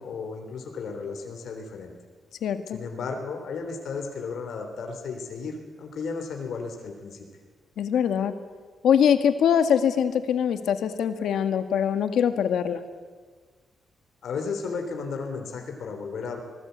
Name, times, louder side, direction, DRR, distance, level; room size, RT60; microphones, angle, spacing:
voice 1, 0.0-1.9 2.7-7.3 14.2-16.4, left 4 dB, 70° left, 4 dB, 3.4 m, -34 dB
voice 2, 2.4-2.8 7.8-8.3 8.8-12.8, left 8 dB, 85° left, 8 dB, 1.8 m, -23 dB
26.0 x 19.5 x 8.2 m, 1.5 s
wide cardioid pair, 145°, 0 cm